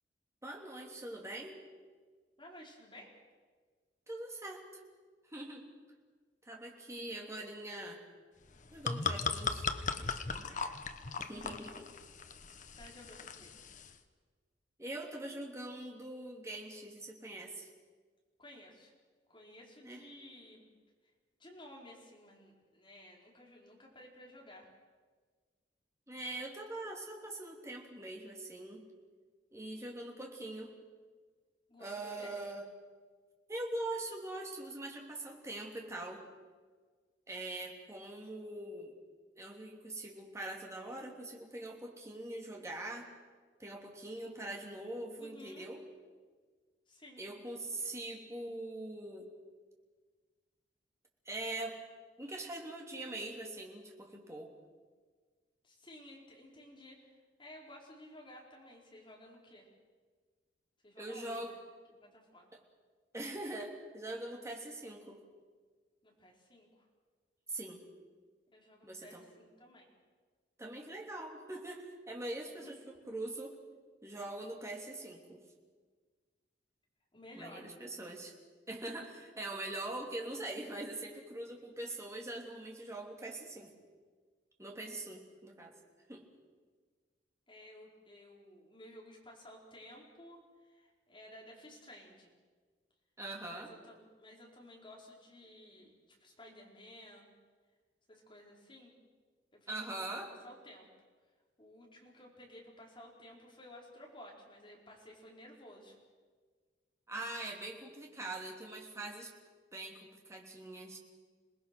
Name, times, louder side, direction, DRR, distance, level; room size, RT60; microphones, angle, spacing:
voice 1, 0.4-1.6 4.1-4.6 5.3-5.6 6.4-8.0 8.7-9.7 10.0-10.7 11.2-11.9 14.8-17.7 19.8-20.0 26.1-28.8 29.5-30.7 31.8-32.7 33.5-36.2 37.3-38.9 39.4-43.1 43.6-45.8 47.2-49.3 51.2-51.8 52.2-54.5 61.0-61.5 62.5-62.6 63.1-65.2 67.5-67.8 68.8-69.3 70.6-73.6 74.0-75.4 77.4-78.3 78.7-83.7 84.6-85.7 86.1-86.2 93.2-93.7 99.7-100.3 107.1-109.3 109.7-111.0, right 2 dB, 15° right, 0 dB, 3.1 m, -43 dB
voice 2, 2.4-3.1 12.7-13.6 18.4-18.9 19.3-20.6 21.4-24.7 31.7-32.3 45.2-45.7 46.9-47.2 47.9-48.0 55.6-59.7 60.8-61.6 61.9-62.5 66.0-66.8 68.5-69.9 72.4-72.7 77.1-77.6 84.7-85.0 87.5-92.3 93.5-97.3 98.1-98.9 99.5-100.1 100.4-100.9 101.6-106.0, left 1 dB, 30° left, -2 dB, 4.7 m, -55 dB
sound 1, 8.5-13.9, left 5 dB, 45° left, 1.1 m, -38 dB
27.0 x 19.5 x 6.2 m, 1.5 s
head